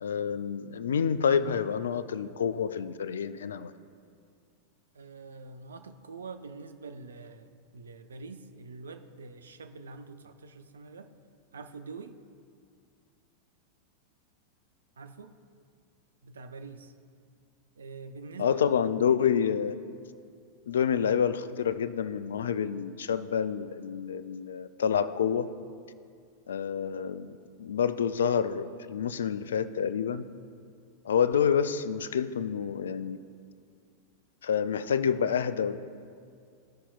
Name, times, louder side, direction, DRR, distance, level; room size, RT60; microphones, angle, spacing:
voice 1, 0.0-3.7 18.4-19.8 20.7-25.5 26.5-27.3 27.6-30.3 31.0-33.2 34.4-35.8, left 7 dB, 65° left, 14 dB, 0.3 m, -28 dB
voice 2, 4.9-11.1 11.5-12.2 15.0-15.4 16.2-16.9 17.8-18.8, right 4 dB, 70° right, 8 dB, 0.5 m, -45 dB
15.0 x 5.6 x 2.4 m, 2.3 s
figure-of-eight pair, 90°, 0 cm